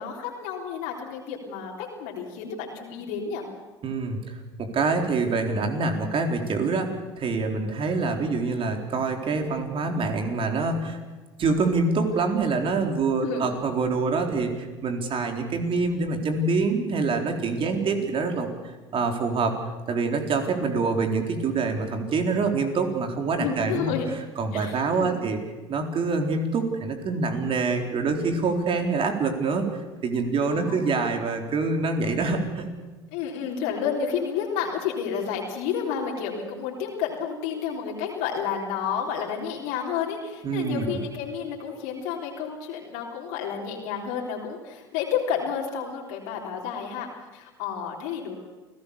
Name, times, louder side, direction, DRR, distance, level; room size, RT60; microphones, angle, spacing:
voice 1, 0.0-3.5 13.2-13.4 17.6-18.1 23.4-24.1 24.5-25.2 30.5-30.8 33.1-48.4, left 7 dB, 65° left, -1 dB, 3.7 m, -31 dB
voice 2, 3.8-11.0 11.4-19.6 19.9-23.9 24.4-25.4 25.7-32.7 40.4-40.9, right 4 dB, 40° right, 4 dB, 4.1 m, -26 dB
28.5 x 17.5 x 7.0 m, 1.3 s
hypercardioid pair, 70°, 14 cm